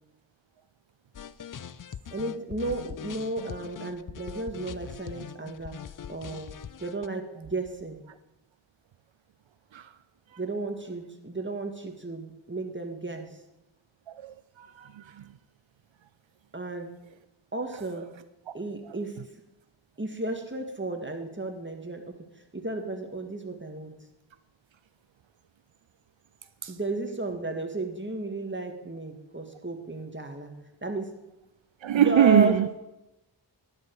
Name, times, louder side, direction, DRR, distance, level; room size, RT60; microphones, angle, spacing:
sound 1, 1.1-7.1, left 8 dB, 45° left, 0.5 m, -42 dB
voice 1, 2.1-5.8 6.1-6.5 6.8-8.0 10.4-13.4 16.5-16.9 17.5-18.1 18.5-19.3 20.0-22.1 22.5-24.0 26.7-30.5 30.8-31.1 32.0-32.8, right 2 dB, 25° right, 1.9 m, -33 dB
voice 2, 14.1-15.2 26.6-26.7 31.8-32.7, right 10 dB, 80° right, 0.5 m, -23 dB
12.0 x 9.8 x 4.7 m
wide cardioid pair, 55°, 45 cm